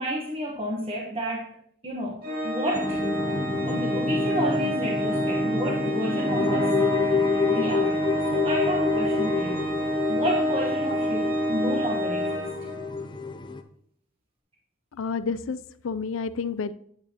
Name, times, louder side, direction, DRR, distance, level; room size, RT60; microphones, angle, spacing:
voice 1, 0.0-1.5 1.8-3.0 3.7-6.7 7.5-8.0 8.3-12.4, equal, 30° right, -1 dB, 1.1 m, -31 dB
Organ, 2.2-13.0, right 1 dB, 50° right, 2.3 m, -28 dB
sound 1, 2.7-13.6, left 4 dB, 25° left, 0.6 m, -29 dB
voice 2, 14.9-16.7, left 5 dB, 70° left, 14 dB, 0.5 m, -30 dB
8.8 x 8.8 x 2.9 m, 0.65 s
head